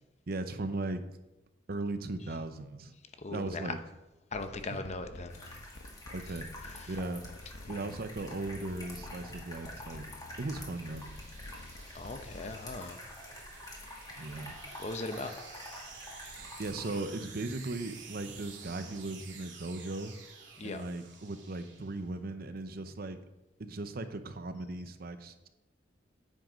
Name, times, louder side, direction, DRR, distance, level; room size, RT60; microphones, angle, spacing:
voice 1, 0.3-1.0 1.7-2.9 3.3-3.8 4.7-4.8 6.1-6.5 6.9-7.3 7.7-10.1 10.4-11.1 14.2-14.6 16.4-20.1 20.6-23.2 23.6-25.5, right 2 dB, 55° right, 10 dB, 0.7 m, -37 dB
voice 2, 3.2-3.6 4.3-5.6 6.8-6.9 7.7-7.9 11.9-13.0 14.8-15.4 20.6-20.8, left 2 dB, 35° left, 8 dB, 0.8 m, -39 dB
sound 1, 4.3-12.7, left 1 dB, 65° left, 0.9 m, -50 dB
sound 2, 5.3-17.0, left 1 dB, 20° left, 2.2 m, -48 dB
sound 3, 8.9-22.3, right 5 dB, 80° right, 2.0 m, -51 dB
9.1 x 7.7 x 5.1 m, 0.99 s
head